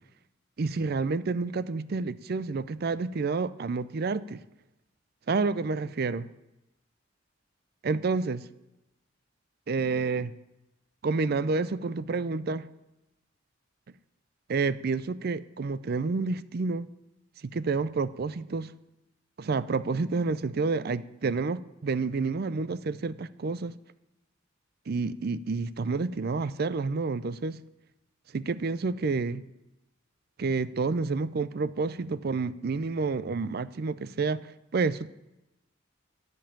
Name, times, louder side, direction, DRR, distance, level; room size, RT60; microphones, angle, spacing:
voice 1, 0.6-4.4 5.3-6.3 7.8-8.4 9.7-10.3 11.0-12.7 14.5-16.9 17.5-18.7 19.4-23.8 24.9-27.6 28.3-29.4 30.4-35.1, right 4 dB, 50° right, 16 dB, 0.5 m, -29 dB
12.5 x 5.4 x 8.7 m, 0.94 s
head